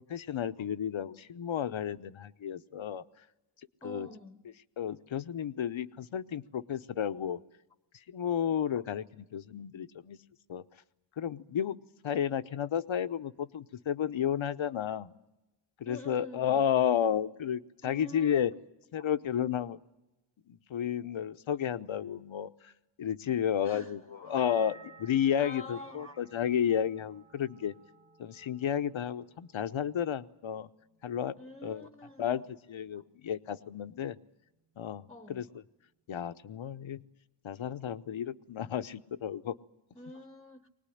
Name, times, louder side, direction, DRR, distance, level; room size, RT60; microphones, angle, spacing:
voice 1, 0.0-3.0 3.8-4.1 4.8-7.4 8.1-10.2 10.5-10.6 11.2-11.8 12.0-15.1 15.8-18.5 18.9-19.8 20.5-22.5 23.0-27.7 28.2-30.7 31.0-31.3 31.6-31.9 32.2-32.4 32.7-34.2 34.8-35.0 35.3-35.4 36.1-37.0 37.4-39.5, left 9 dB, 65° left, 0.9 m, -32 dB
voice 2, 3.8-4.4 15.8-16.7 17.8-18.5 19.0-19.1 23.6-24.4 25.4-26.3 31.4-32.5 33.0-33.1 35.1-35.6 39.9-40.7, left 1 dB, 10° left, 1.0 m, -47 dB
sound 1, 24.4-30.0 30.3-31.0, right 5 dB, 65° right, 1.5 m, -57 dB
21.5 x 19.5 x 10.0 m
wide cardioid pair, 80°, 50 cm